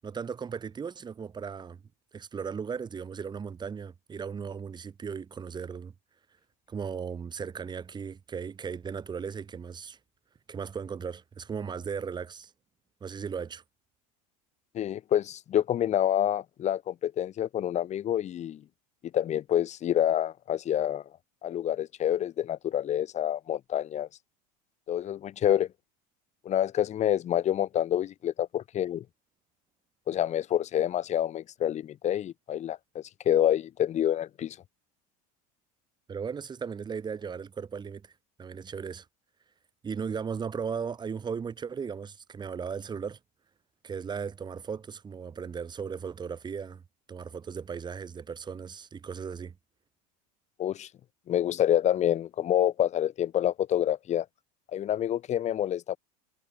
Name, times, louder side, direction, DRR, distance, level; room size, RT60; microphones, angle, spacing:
voice 1, 0.0-1.8 2.1-5.9 6.7-10.0 10.5-12.5 13.0-13.6 36.1-38.1 38.4-39.1 39.8-43.2 43.8-46.8 47.1-49.5, right 6 dB, 20° right, 5.7 m, -36 dB
voice 2, 14.7-18.6 19.1-21.0 21.4-24.1 24.9-25.7 26.4-29.0 30.1-34.6 50.6-50.9 51.3-54.2 54.7-56.0, left 11 dB, 35° left, 4.8 m, -27 dB
supercardioid pair, 120°, 19 cm